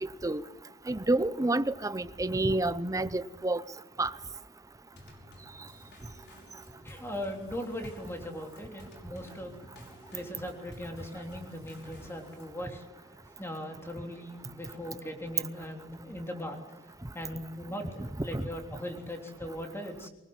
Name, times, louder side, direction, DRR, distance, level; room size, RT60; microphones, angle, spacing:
voice 1, 0.9-3.6 4.0-4.1 18.3-18.5, right 2 dB, 15° right, 0.7 m, -28 dB
Drum kit / Snare drum / Bass drum, 5.0-12.6, left 1 dB, 55° left, 5.3 m, -54 dB
voice 2, 6.8-12.8 13.4-16.6 17.1-20.1, equal, 10° left, 3.4 m, -39 dB
24.0 x 20.0 x 7.9 m
head